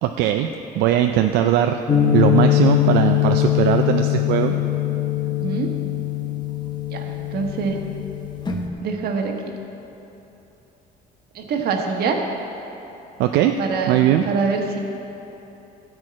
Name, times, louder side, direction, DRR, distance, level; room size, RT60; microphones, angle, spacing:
voice 1, 0.0-0.5 0.7-1.8 2.1-4.5 13.2-13.6 13.9-14.2, right 11 dB, 90° right, 6 dB, 0.4 m, -19 dB
sound 1, 1.9-8.7, left 12 dB, 25° left, 1.0 m, -21 dB
voice 2, 5.2-5.7 6.9-7.8 8.8-9.4 11.3-12.2 13.6-13.9 14.2-14.8, right 5 dB, 70° right, 2 dB, 1.4 m, -25 dB
13.5 x 4.8 x 8.6 m, 3.0 s
cardioid pair, 110°, 17 cm